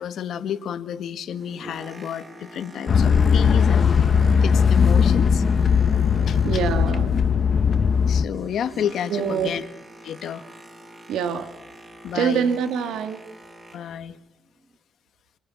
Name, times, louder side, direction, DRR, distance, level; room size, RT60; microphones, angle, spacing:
voice 1, 0.0-4.1 4.4-5.4 6.3-6.6 8.1-9.6 10.0-10.4 12.0-12.5 13.7-14.2, left 9 dB, 70° left, 11 dB, 1.8 m, -30 dB
Boat Water vehicle, 1.1-7.3 7.5-14.0 14.6-14.8, right 1 dB, 25° right, 7.5 m, -44 dB
sound 1, 2.9-8.2, left 6 dB, 45° left, 1.8 m, -18 dB
voice 2, 6.4-7.1 9.1-9.6 11.1-11.5 12.1-13.2, right 7 dB, 80° right, 8 dB, 2.6 m, -25 dB
27.0 x 23.0 x 7.4 m, 0.87 s
cardioid pair, 90°, 0 cm